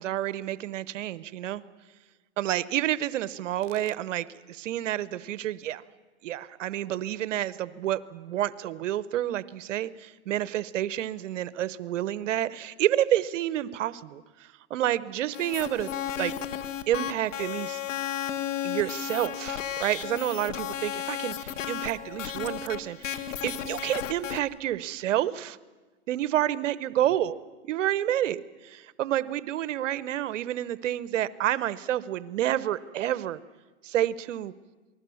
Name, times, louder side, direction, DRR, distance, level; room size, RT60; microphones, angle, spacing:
voice 1, 0.0-1.6 2.4-5.8 6.2-15.9 16.2-16.3 16.9-17.8 18.6-25.6 26.1-27.4 27.7-33.4 33.8-34.5, right 12 dB, 80° right, 17 dB, 1.0 m, -29 dB
sound 1, 15.3-24.4, left 10 dB, 90° left, 1.6 m, -34 dB
28.0 x 20.0 x 7.1 m, 1.3 s
supercardioid pair, 145°, 37 cm